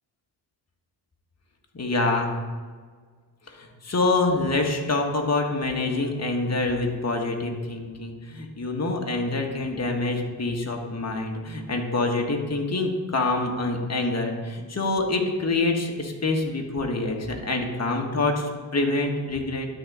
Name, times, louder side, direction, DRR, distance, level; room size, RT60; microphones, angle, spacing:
voice 1, 1.7-2.3 3.5-19.7, left 2 dB, 35° left, 2 dB, 1.6 m, -26 dB
11.5 x 4.1 x 4.9 m, 1.5 s
cardioid pair, 60°, 44 cm